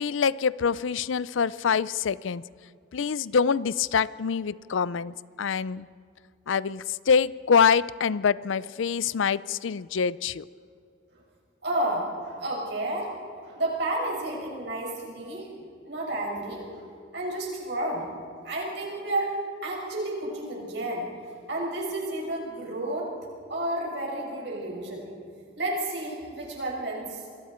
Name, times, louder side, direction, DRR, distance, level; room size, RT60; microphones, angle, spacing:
voice 1, 0.0-2.4 2.9-5.9 6.5-10.4, left 6 dB, 80° left, 19 dB, 0.5 m, -25 dB
voice 2, 11.6-13.1 13.4-15.5 15.8-16.6 17.1-18.1 18.4-19.3 19.6-21.0 21.5-23.1 23.5-25.1 25.6-27.2, right 1 dB, 60° right, -2 dB, 6.0 m, -31 dB
28.0 x 21.5 x 4.4 m, 2.4 s
head